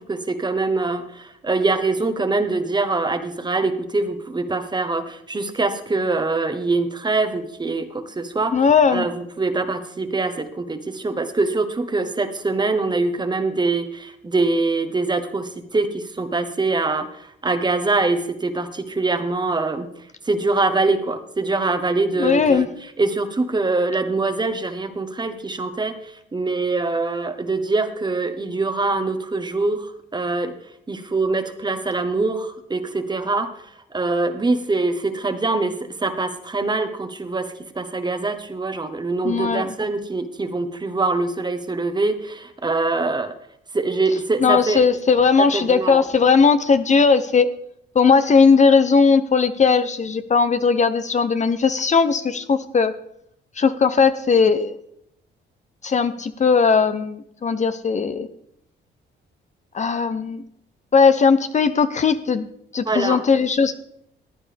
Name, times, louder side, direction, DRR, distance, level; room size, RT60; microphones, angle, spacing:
voice 1, 0.1-8.7 8.9-19.9 20.2-22.7 23.0-30.5 30.9-33.6 33.9-43.3 43.7-44.8 45.4-46.0 62.8-63.2, right 3 dB, 20° right, 9 dB, 1.1 m, -24 dB
voice 2, 8.5-9.0 22.2-22.7 39.2-39.7 44.4-47.5 47.9-52.9 53.6-54.7 55.8-58.3 59.7-60.4 60.9-62.4 62.7-63.7, left 5 dB, 35° left, 11 dB, 0.7 m, -18 dB
15.0 x 9.7 x 3.5 m, 0.74 s
cardioid pair, 90°, 20 cm